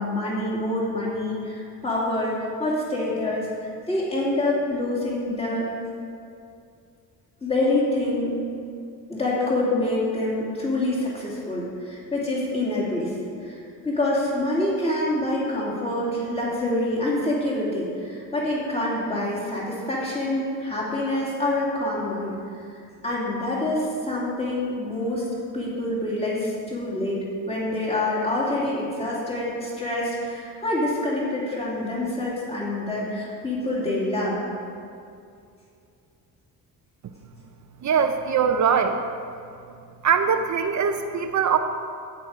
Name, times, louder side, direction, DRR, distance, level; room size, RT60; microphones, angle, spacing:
voice 1, 0.0-5.6 7.4-8.4 9.1-13.1 13.4-13.6 13.8-22.3 23.0-25.3 25.5-34.4, left 1 dB, 15° left, -6 dB, 2.9 m, -26 dB
voice 2, 37.8-39.0 40.0-41.6, right 6 dB, 50° right, 6 dB, 0.7 m, -21 dB
13.5 x 9.5 x 5.0 m, 2.5 s
cardioid pair, 160°, 37 cm